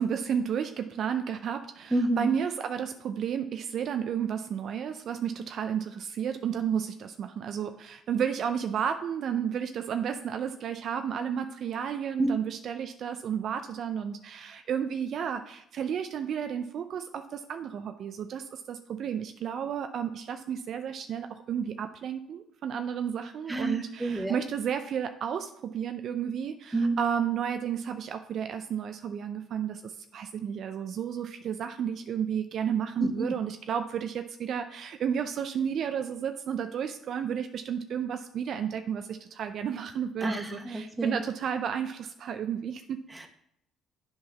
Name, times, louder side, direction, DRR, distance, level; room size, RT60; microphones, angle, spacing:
voice 1, 0.0-43.0, right 8 dB, 60° right, 8 dB, 0.5 m, -32 dB
voice 2, 1.9-2.3 12.2-12.3 23.5-24.4 26.7-27.0 33.0-33.3 40.2-41.2 43.1-43.3, right 2 dB, 15° right, 5 dB, 1.4 m, -29 dB
7.5 x 4.6 x 5.8 m, 0.76 s
hypercardioid pair, 55°, 0 cm